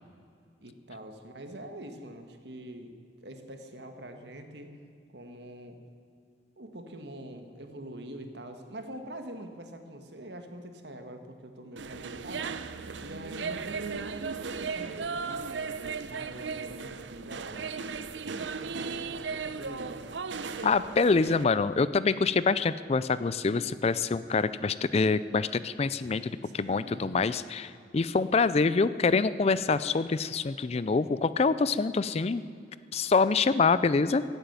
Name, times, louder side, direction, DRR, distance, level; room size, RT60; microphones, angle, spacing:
voice 1, 0.6-4.7 5.1-5.8 6.6-12.5 13.0-20.6 26.6-27.2 27.5-27.6, right 1 dB, 65° right, 6 dB, 1.7 m, -44 dB
sound 1, 11.8-21.4, right 5 dB, 85° right, 0.7 m, -36 dB
voice 2, 20.6-32.4 32.9-34.2, left 4 dB, 35° left, 15 dB, 0.4 m, -26 dB
15.5 x 9.0 x 9.4 m, 2.4 s
head